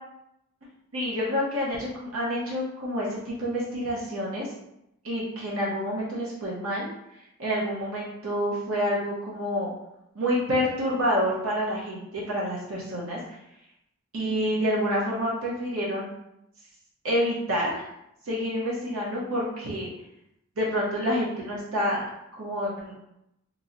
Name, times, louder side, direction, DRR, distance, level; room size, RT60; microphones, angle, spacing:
voice 1, 0.9-4.5 5.0-6.9 7.4-9.7 10.1-13.2 14.1-16.1 17.0-17.8 18.3-19.9 20.6-22.0 22.4-22.9, equal, 75° right, -5 dB, 0.8 m, -28 dB
3.0 x 2.7 x 2.5 m, 0.81 s
head